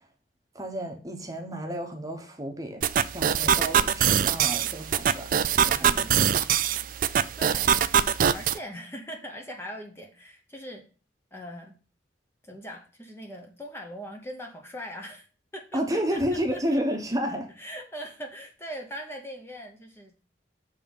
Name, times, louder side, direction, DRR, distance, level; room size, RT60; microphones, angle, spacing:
voice 1, 0.5-2.8 3.1-5.3 5.5-6.3 15.7-17.5, equal, 20° right, 0.9 m, -31 dB
sound 1, 2.8-8.6, right 8 dB, 50° right, 0.3 m, -23 dB
voice 2, 5.8-6.2 7.4-7.9 8.3-10.9 11.3-11.8 12.4-15.3 15.5-16.6 17.6-20.1, equal, 15° left, 0.8 m, -41 dB
6.9 x 3.6 x 5.4 m
head